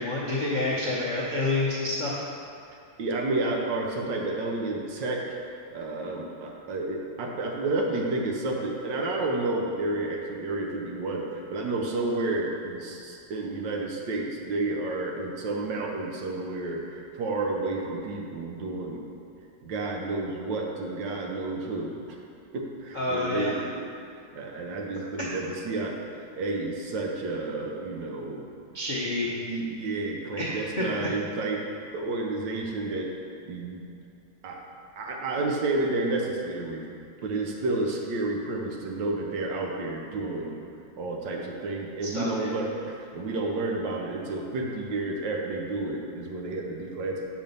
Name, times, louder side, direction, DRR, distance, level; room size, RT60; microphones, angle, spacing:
voice 1, 0.0-2.2 22.9-23.5 25.3-25.4 28.7-29.3 30.4-30.8 42.0-42.5, left 2 dB, 50° left, -6 dB, 0.5 m, -28 dB
voice 2, 3.0-5.2 5.7-19.0 19.6-22.2 22.5-23.9 24.3-26.0 26.3-28.5 29.3-31.6 31.9-33.1 33.5-33.8 34.4-34.7 35.0-36.8 37.2-40.6 40.9-47.3, right 2 dB, 70° right, 0 dB, 1.5 m, -30 dB
7.2 x 5.0 x 5.3 m, 2.4 s
omnidirectional pair, 2.2 m